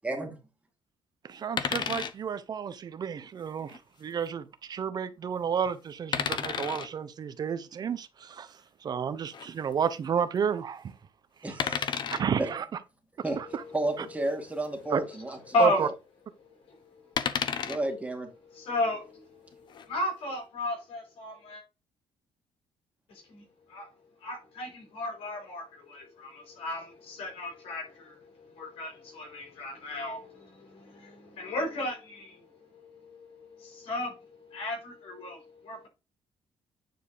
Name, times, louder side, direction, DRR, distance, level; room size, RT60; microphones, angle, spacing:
voice 1, 0.0-0.4 11.4-12.0 12.4-12.5 13.2-13.4 13.7-15.4 15.7-15.9 17.6-18.3, right 2 dB, 15° right, 2.1 m, -32 dB
voice 2, 1.2-10.9 11.5-11.8 12.1-12.6 13.4-13.6 14.9-15.0 15.6-15.9, right 7 dB, 45° right, 0.7 m, -31 dB
sound 1, 1.6-2.1 3.6-3.8 6.1-6.9 9.3-9.5 11.6-12.2 14.2-14.4 14.6-14.7 17.2-17.8 19.5-19.9, left 7 dB, 50° left, 0.8 m, -31 dB
voice 3, 15.5-15.8 17.0-17.1 18.5-21.6 23.1-23.4 23.7-23.9 24.2-32.4 32.7-35.9, left 2 dB, 75° left, 5.3 m, -34 dB
9.3 x 4.6 x 4.9 m
cardioid pair, 120°, 10 cm